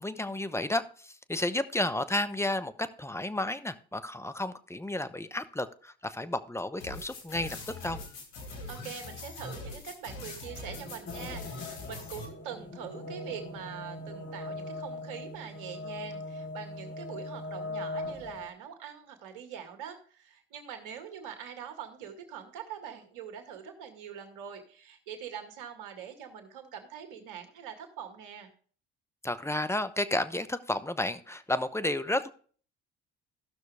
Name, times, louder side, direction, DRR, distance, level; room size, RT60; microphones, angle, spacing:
voice 1, 0.0-7.6 7.8-8.0 29.2-32.3, left 1 dB, 10° left, 12 dB, 0.9 m, -32 dB
sound 1, 6.8-12.3, left 2 dB, 85° left, 2.2 m, -42 dB
voice 2, 8.4-28.5, right 8 dB, 75° right, 7 dB, 2.0 m, -43 dB
sound 2, 10.7-18.5, left 2 dB, 35° left, 1.9 m, -40 dB
15.0 x 6.1 x 3.4 m, 0.43 s
hypercardioid pair, 60°, 31 cm